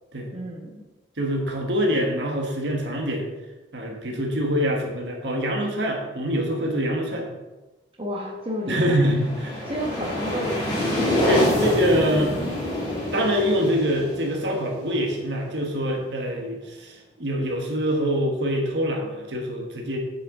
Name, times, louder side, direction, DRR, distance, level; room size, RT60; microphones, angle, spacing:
voice 1, 0.3-0.8 8.0-9.0 9.7-10.7, equal, 30° right, -2 dB, 1.3 m, -31 dB
voice 2, 1.2-3.3 3.7-7.3 8.7-9.6 11.3-12.3 13.1-20.0, equal, 65° right, 1 dB, 1.4 m, -25 dB
sound 1, 8.8-15.5, left 1 dB, 25° left, 3.1 m, -27 dB
8.4 x 6.8 x 3.7 m, 1.1 s
head